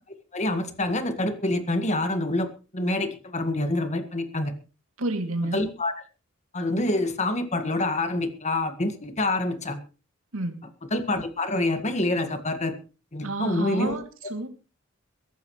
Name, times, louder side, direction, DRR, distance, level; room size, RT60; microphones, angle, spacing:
voice 1, 0.3-4.5 5.5-5.9 6.5-9.8 10.9-12.8 13.1-14.0, left 2 dB, 35° left, 7 dB, 1.8 m, -26 dB
voice 2, 5.0-5.6 10.3-10.6 13.2-14.0 14.3-14.5, right 2 dB, 70° right, 5 dB, 2.6 m, -29 dB
23.0 x 12.0 x 3.2 m, 0.34 s
head